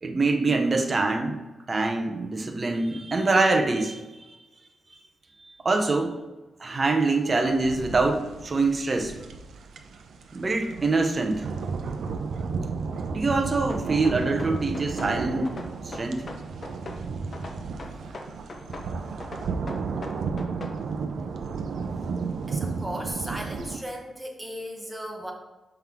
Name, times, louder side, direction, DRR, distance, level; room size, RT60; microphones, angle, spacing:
voice 1, 0.0-1.4 1.7-4.2 5.6-6.2 6.6-9.1 10.3-11.5 13.1-15.5 15.8-16.2, right 3 dB, 35° right, 4 dB, 0.8 m, -24 dB
sound 1, 7.3-23.8, right 4 dB, 80° right, 0.6 m, -33 dB
sound 2, 13.7-15.1 15.5-17.0 17.3-18.9 19.2-20.8, left 2 dB, 40° left, 0.8 m, -39 dB
voice 2, 22.5-25.3, equal, 10° right, 0 dB, 1.1 m, -36 dB
5.9 x 5.6 x 3.6 m, 1.1 s
wide cardioid pair, 120°, 0 cm